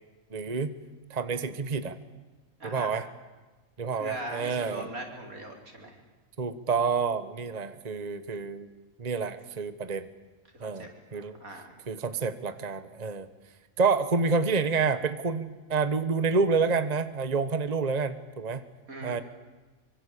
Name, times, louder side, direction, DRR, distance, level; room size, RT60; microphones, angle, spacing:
voice 1, 0.3-0.7 1.1-2.0 2.6-3.0 3.8-4.9 6.4-8.7 9.0-10.1 10.6-11.4 11.9-13.3 13.8-18.6 19.0-19.2, right 4 dB, 30° right, 12 dB, 1.3 m, -28 dB
voice 2, 3.9-6.0 10.5-11.8 18.9-19.2, right 2 dB, 85° right, 2 dB, 5.0 m, -40 dB
25.0 x 25.0 x 8.4 m, 1.2 s
omnidirectional pair, 1.4 m